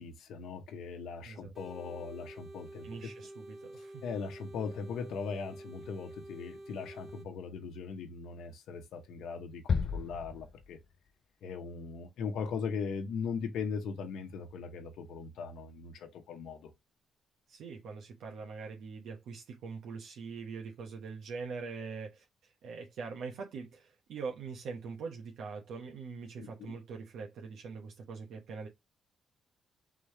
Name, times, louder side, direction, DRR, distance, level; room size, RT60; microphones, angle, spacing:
voice 1, 0.0-3.1 4.0-10.8 11.4-16.7 26.4-26.7, left 5 dB, 85° left, 0.9 m, -39 dB
sound 1, 1.5-7.3, right 1 dB, 30° right, 1.2 m, -49 dB
voice 2, 2.8-4.0 17.5-22.2 22.6-28.7, right 5 dB, 80° right, 1.0 m, -43 dB
sound 2, 9.7-11.1, left 5 dB, 45° left, 0.3 m, -33 dB
3.7 x 3.3 x 3.5 m
cardioid pair, 110°, 0 cm